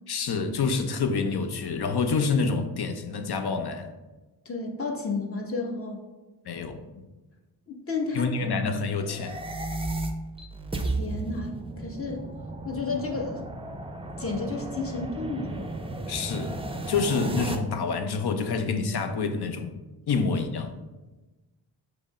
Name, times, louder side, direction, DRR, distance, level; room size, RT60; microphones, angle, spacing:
voice 1, 0.1-3.9 6.5-6.8 8.1-9.4 16.1-16.6 16.9-19.8 20.1-20.8, left 4 dB, 60° left, 7 dB, 0.6 m, -27 dB
voice 2, 4.4-6.0 7.7-8.3 10.7-12.2 12.6-13.4 14.2-15.6, left 3 dB, 30° left, 1 dB, 1.0 m, -32 dB
sound 1, 9.1-17.6, right 2 dB, 15° right, 0.5 m, -34 dB
5.1 x 2.1 x 4.8 m, 1.1 s
cardioid pair, 50°, 44 cm